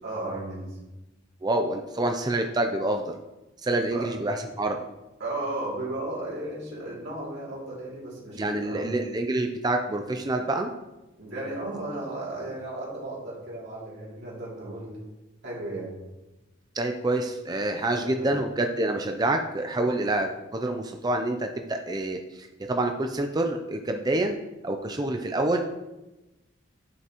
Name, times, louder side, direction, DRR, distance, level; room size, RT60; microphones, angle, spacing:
voice 1, 0.0-0.8 3.9-4.1 5.2-8.9 11.2-15.0 15.4-15.9 17.8-18.3, right 1 dB, 60° right, -5 dB, 2.8 m, -35 dB
voice 2, 1.4-3.1 3.6-4.8 8.4-10.7 16.7-24.4 24.6-25.6, right 2 dB, 20° right, 4 dB, 0.4 m, -27 dB
9.4 x 5.8 x 3.0 m, 1.0 s
head